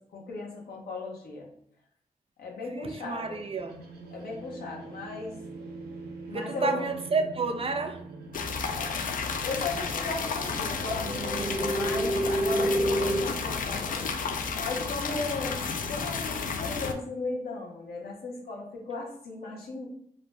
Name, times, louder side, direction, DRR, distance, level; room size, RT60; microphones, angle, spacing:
voice 1, 0.1-1.5 2.4-3.4 4.1-5.4 6.3-6.9 8.7-9.1 9.4-14.1 14.5-15.6 15.9-19.9, left 3 dB, 80° left, -1 dB, 0.8 m, -36 dB
voice 2, 2.6-3.8 6.3-8.0, right 4 dB, 35° right, 6 dB, 0.4 m, -30 dB
sound 1, 3.0-13.2, right 1 dB, 85° right, 0.5 m, -33 dB
sound 2, 8.3-16.9, left 5 dB, 60° left, 0.4 m, -32 dB
2.5 x 2.1 x 3.2 m, 0.69 s
cardioid pair, 50°, 16 cm